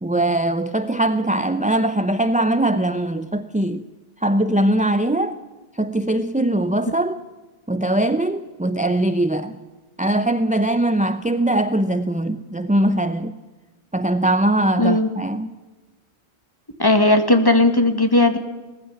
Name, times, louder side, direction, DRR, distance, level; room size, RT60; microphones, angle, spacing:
voice 1, 0.0-3.9 4.2-5.4 5.8-7.2 7.7-9.6 10.0-13.4 13.9-15.5, right 1 dB, 10° right, 0.6 m, -21 dB
voice 2, 14.8-15.1 16.8-18.4, left 2 dB, 20° left, 2.0 m, -16 dB
19.0 x 15.0 x 9.6 m
omnidirectional pair, 1.1 m